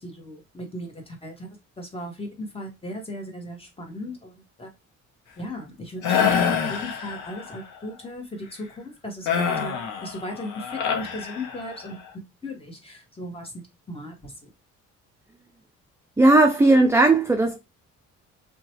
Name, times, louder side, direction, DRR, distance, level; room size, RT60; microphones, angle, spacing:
voice 1, 0.0-1.5 1.8-4.7 5.4-12.0 12.4-13.5 13.9-14.5, left 1 dB, 20° left, 1.1 m, -37 dB
sound 1, 6.0-7.6 9.3-11.9, left 7 dB, 80° left, 0.8 m, -26 dB
voice 2, 16.2-17.6, right 2 dB, 10° right, 0.4 m, -16 dB
2.8 x 2.2 x 2.9 m
cardioid pair, 90°, 30 cm